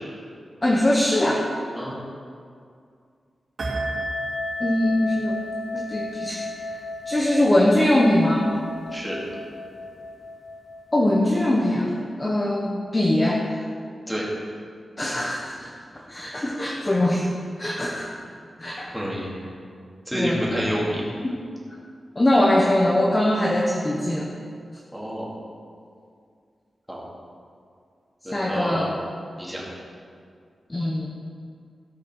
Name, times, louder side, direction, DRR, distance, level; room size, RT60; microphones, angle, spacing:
voice 1, 0.6-1.4 4.6-5.4 5.7-6.8 7.1-8.5 10.9-11.9 12.2-13.4 15.0-15.7 16.1-17.3 17.6-18.1 18.6-18.9 20.1-20.4 21.2-21.4 22.2-24.3 28.3-28.9 30.7-31.1, left 1 dB, 20° left, -2 dB, 0.9 m, -22 dB
sound 1, 3.6-11.7, left 1 dB, 60° right, 3.1 m, -33 dB
voice 2, 18.9-19.3 20.1-21.0 24.9-25.3 26.9-27.0 28.2-28.9 29.4-29.6, equal, ahead, -5 dB, 2.5 m, -28 dB
16.5 x 5.7 x 6.1 m, 2.3 s
wide cardioid pair, 170°, 0 cm